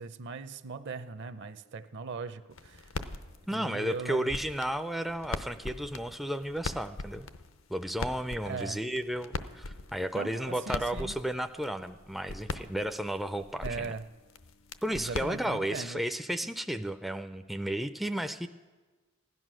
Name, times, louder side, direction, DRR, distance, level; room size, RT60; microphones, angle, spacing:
voice 1, 0.0-2.9 3.5-4.3 8.4-8.8 10.1-11.2 13.6-14.0 14.9-16.0, right 4 dB, 60° right, 12 dB, 0.7 m, -39 dB
sound 1, 2.5-15.9, left 3 dB, 75° left, 0.7 m, -42 dB
voice 2, 3.5-7.3 7.7-13.9 14.8-18.5, right 1 dB, ahead, 8 dB, 0.3 m, -33 dB
16.0 x 11.0 x 6.2 m, 1.3 s
head